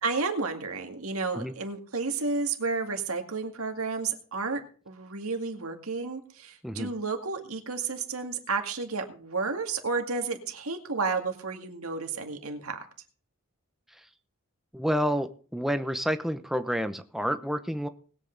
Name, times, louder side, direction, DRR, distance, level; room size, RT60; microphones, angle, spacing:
voice 1, 0.0-12.8, right 4 dB, 90° right, 4 dB, 2.1 m, -31 dB
voice 2, 14.7-17.9, equal, ahead, 9 dB, 0.7 m, -29 dB
20.0 x 8.3 x 3.9 m, 0.41 s
head